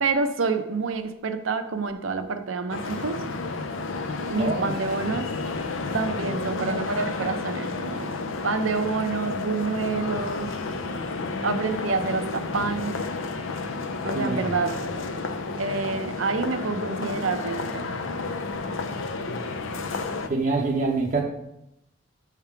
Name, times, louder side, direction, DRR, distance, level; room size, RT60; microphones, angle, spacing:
voice 1, 0.0-3.3 4.3-5.3 5.9-8.1 8.4-10.5 11.4-12.9 14.0-14.8 15.6-17.8, right 4 dB, 90° right, 8 dB, 0.6 m, -27 dB
sound 1, 2.7-20.3, left 3 dB, 85° left, 0.5 m, -31 dB
voice 2, 4.4-4.7 14.1-14.5 20.3-21.2, right 3 dB, 40° right, -1 dB, 0.6 m, -25 dB
5.6 x 3.6 x 5.8 m, 0.81 s
head